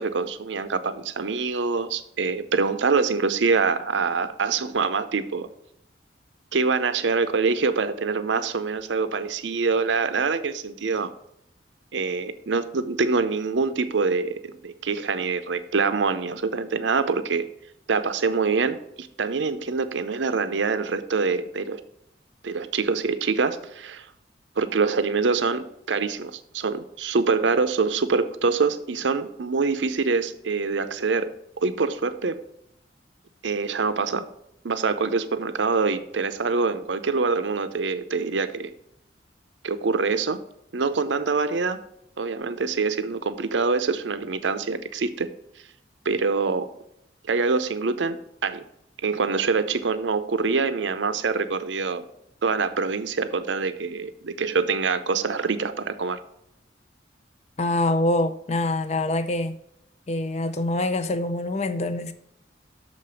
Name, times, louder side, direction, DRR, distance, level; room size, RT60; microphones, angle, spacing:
voice 1, 0.0-5.5 6.5-11.1 11.9-17.4 17.9-21.8 22.4-24.1 24.6-31.3 31.6-32.4 33.4-34.3 34.6-38.7 39.6-40.4 40.7-41.8 42.2-45.3 46.0-46.7 47.3-48.6 49.0-52.1 52.4-56.2, right 4 dB, 80° right, 0.6 m, -25 dB
voice 2, 57.6-59.5 60.1-62.1, left 2 dB, 35° left, 0.6 m, -25 dB
6.5 x 5.1 x 6.9 m
head